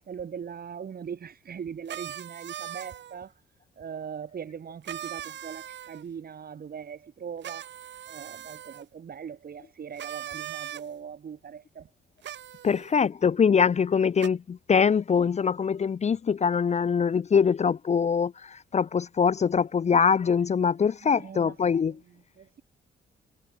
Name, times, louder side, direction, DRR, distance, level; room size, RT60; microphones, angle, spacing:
voice 1, 0.0-3.3 3.8-7.7 8.1-11.9 21.0-22.6, right 7 dB, 50° right, 5.0 m, -40 dB
sound 1, 1.9-3.2 4.9-6.0 7.4-8.8 10.0-10.8 12.2-12.9 14.2-14.3, right 11 dB, 65° right, 1.6 m, -39 dB
voice 2, 12.6-22.0, left 6 dB, 35° left, 0.7 m, -23 dB
cardioid pair, 90°, 20 cm